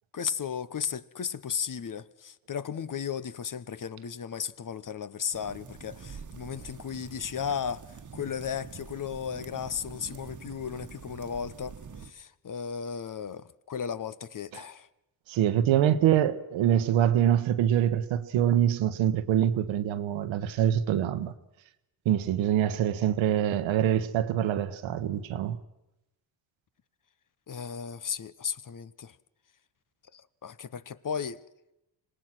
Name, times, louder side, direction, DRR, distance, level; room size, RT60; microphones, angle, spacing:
voice 1, 0.1-14.9 27.5-29.2 30.1-31.4, left 7 dB, 45° left, 1.1 m, -35 dB
sound 1, 5.3-12.1, right 6 dB, 40° right, 1.5 m, -46 dB
voice 2, 15.3-21.3 22.0-25.6, right 10 dB, 80° right, 1.2 m, -25 dB
26.0 x 18.0 x 6.1 m
supercardioid pair, 50°, 46 cm